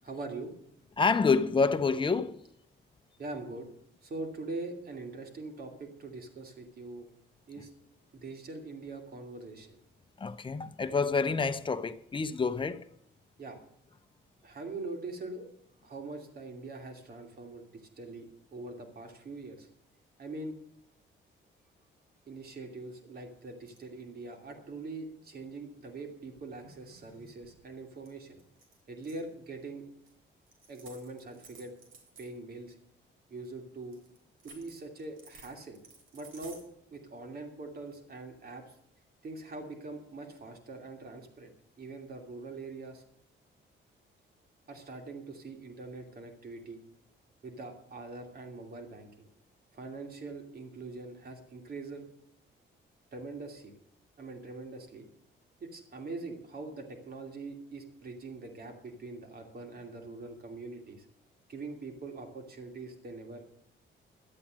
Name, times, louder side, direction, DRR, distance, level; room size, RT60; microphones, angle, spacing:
voice 1, 0.0-0.5 3.2-3.7 4.0-7.1 7.5-7.7 8.1-9.8 13.4-13.6 14.4-15.4 15.8-19.7 20.2-20.6 22.3-28.4 28.9-29.8 30.7-31.7 32.2-32.8 33.3-34.0 34.4-35.8 36.1-36.6 36.9-38.6 39.2-43.0 44.7-46.8 47.4-49.3 49.7-52.1 53.1-53.7 54.2-55.1 55.6-61.1 61.5-63.5, right 3 dB, 50° right, 2.7 m, -43 dB
voice 2, 1.0-2.4 10.2-12.8, left 4 dB, 25° left, 0.8 m, -28 dB
sound 1, 23.7-24.0 26.4-27.8 28.1-28.2 28.4-29.3 30.1-30.2 30.5-32.3 33.9-36.6, right 3 dB, 80° right, 3.6 m, -55 dB
12.0 x 8.6 x 7.5 m
cardioid pair, 100°, 20 cm